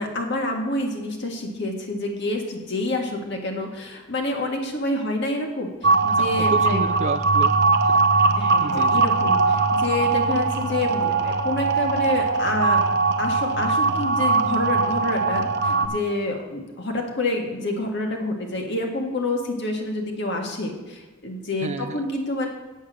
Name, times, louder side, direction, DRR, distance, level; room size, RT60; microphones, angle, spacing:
voice 1, 0.0-6.9 8.4-12.8 13.2-22.5, left 2 dB, 55° left, 2 dB, 1.7 m, -28 dB
sound 1, 5.8-15.9, right 4 dB, 50° right, 0.8 m, -21 dB
voice 2, 6.2-7.5 7.8-8.3 8.6-9.0 21.6-22.0, right 3 dB, 35° right, 12 dB, 0.4 m, -31 dB
8.6 x 8.2 x 6.2 m, 1.2 s
head